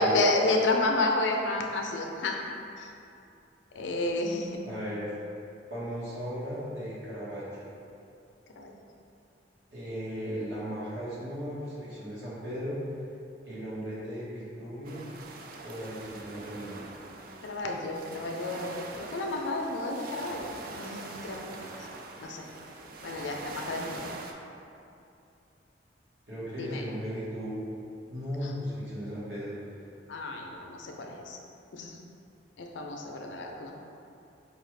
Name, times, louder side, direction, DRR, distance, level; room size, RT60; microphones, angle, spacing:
voice 1, 0.0-2.4 2.8-2.9 3.7-4.7 8.6-8.7 17.4-21.5 21.8-21.9 22.2-22.5 23.0-24.0 26.6-26.8 28.4-28.5 30.1-31.4 31.7-32.0 32.6-33.7, left 2 dB, 90° left, 1 dB, 0.5 m, -30 dB
voice 2, 4.6-5.1 5.7-7.7 9.7-12.8 13.4-15.0 15.6-16.8 26.3-27.6 28.1-29.6, equal, 75° right, -9 dB, 1.4 m, -36 dB
sound 1, 14.8-24.3, right 3 dB, 50° right, 0.3 m, -44 dB
5.0 x 2.4 x 3.2 m, 2.7 s
head